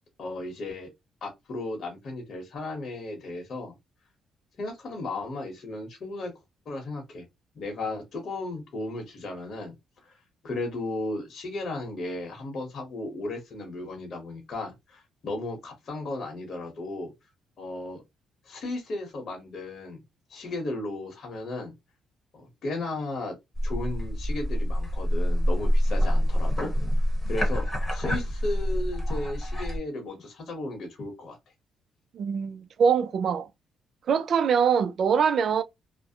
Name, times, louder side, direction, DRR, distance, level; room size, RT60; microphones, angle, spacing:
voice 1, 0.2-0.9 1.2-3.7 4.6-6.3 6.7-7.2 7.5-9.7 10.0-10.2 10.4-17.1 17.6-18.0 18.4-20.0 20.3-21.7 22.3-23.4 23.6-26.7 27.3-31.4, left 2 dB, 55° left, 0.9 m, -35 dB
sound 1, 23.6-29.8, equal, 15° left, 1.0 m, -26 dB
voice 2, 32.1-33.5 34.1-35.6, right 6 dB, 60° right, 0.3 m, -23 dB
2.5 x 2.0 x 2.7 m
cardioid pair, 90°, 0 cm